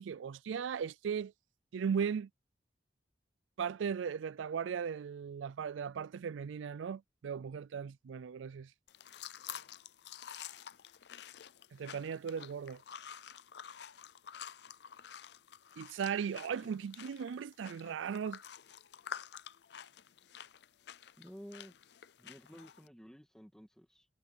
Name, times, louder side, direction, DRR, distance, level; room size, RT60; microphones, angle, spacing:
voice 1, 0.0-1.3 1.7-2.3 3.6-8.7 11.7-12.8 15.8-18.4, right 7 dB, 90° right, 0.4 m, -37 dB
sound 1, 8.9-22.9, left 8 dB, 65° left, 0.5 m, -49 dB
voice 2, 21.2-21.7 22.2-24.1, equal, 5° left, 2.2 m, -52 dB
head